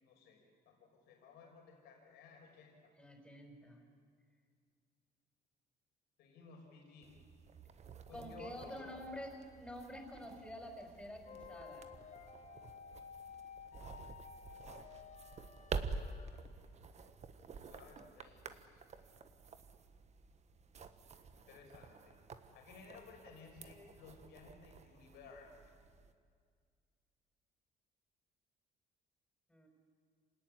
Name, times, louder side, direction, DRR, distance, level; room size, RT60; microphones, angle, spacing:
voice 1, 0.0-2.9 6.2-7.1 8.1-8.9 17.6-18.8 21.3-22.2 22.5-25.5, left 5 dB, 85° left, 1 dB, 5.6 m, -57 dB
voice 2, 3.0-3.8 8.1-11.9 29.5-29.7, equal, 5° left, 3 dB, 5.5 m, -48 dB
sound 1, 7.0-26.1, right 4 dB, 40° right, 1.5 m, -50 dB
sound 2, 11.3-16.4, left 7 dB, 50° left, 3.6 m, -54 dB
26.5 x 18.0 x 9.9 m, 2.1 s
cardioid pair, 110°, 17 cm